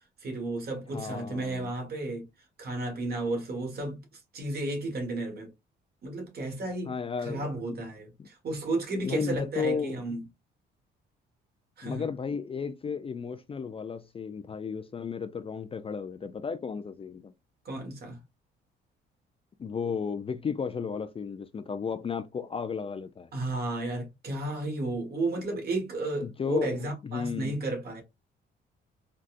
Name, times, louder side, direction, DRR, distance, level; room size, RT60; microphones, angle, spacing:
voice 1, 0.2-2.2 2.6-4.0 4.3-5.5 6.0-6.9 7.2-10.2 11.8-12.1 17.6-18.2 23.3-28.0, right 2 dB, 50° right, 1.4 m, -33 dB
voice 2, 0.9-1.7 6.9-7.5 8.2-8.3 9.0-10.0 11.8-17.3 19.6-23.3 26.2-27.5, left 6 dB, 30° left, 0.4 m, -34 dB
3.9 x 2.3 x 2.4 m
cardioid pair, 90°, 20 cm